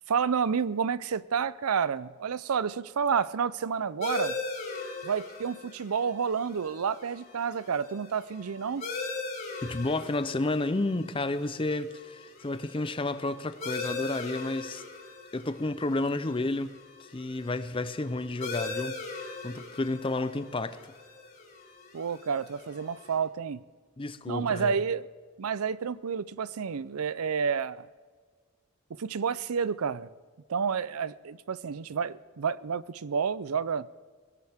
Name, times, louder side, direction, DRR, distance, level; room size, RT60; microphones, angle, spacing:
voice 1, 0.1-4.4 5.0-8.8 21.9-23.6 24.3-25.1 25.4-27.9 29.0-30.1 30.5-33.9, right 6 dB, 85° right, 0.5 m, -30 dB
sound 1, 4.0-23.2, left 3 dB, 45° left, 3.7 m, -40 dB
voice 2, 9.6-14.8 15.3-19.0 19.4-20.8 24.0-24.8, left 2 dB, 25° left, 0.6 m, -31 dB
22.5 x 17.0 x 3.6 m
head